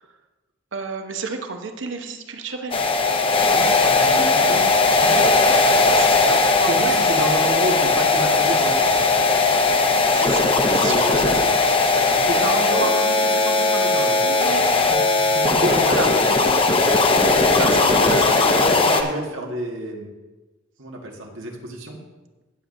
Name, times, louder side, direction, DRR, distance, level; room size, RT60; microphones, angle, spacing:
voice 1, 0.7-2.8 3.3-3.8 5.1-5.2 6.0-7.1 10.1-12.1 12.8-12.9 15.8-16.1 17.5-18.5 18.8-19.2, right 4 dB, 70° right, 5 dB, 0.9 m, -31 dB
sound 1, 2.7-19.0, left 3 dB, 30° left, 0.7 m, -18 dB
voice 2, 3.5-5.1 6.7-9.1 10.8-11.4 12.1-16.4 18.0-18.3 18.6-20.1 20.8-22.0, right 1 dB, 90° right, 0 dB, 1.7 m, -30 dB
16.0 x 7.5 x 2.7 m, 1.2 s
head